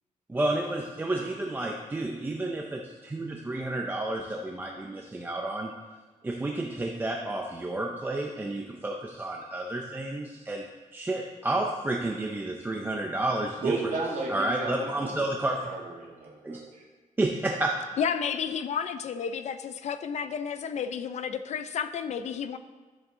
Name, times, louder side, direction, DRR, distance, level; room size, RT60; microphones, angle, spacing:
voice 1, 0.3-5.7 6.2-10.7 10.9-13.7 14.3-15.7 16.4-16.6 17.2-17.9, right 2 dB, 15° right, 1 dB, 0.5 m, -31 dB
voice 2, 13.6-15.1 15.6-16.8, right 3 dB, 65° right, -3 dB, 2.1 m, -33 dB
voice 3, 18.0-22.6, left 7 dB, 55° left, 11 dB, 0.5 m, -31 dB
10.5 x 7.7 x 3.7 m, 1.4 s
wide cardioid pair, 180°, 14 cm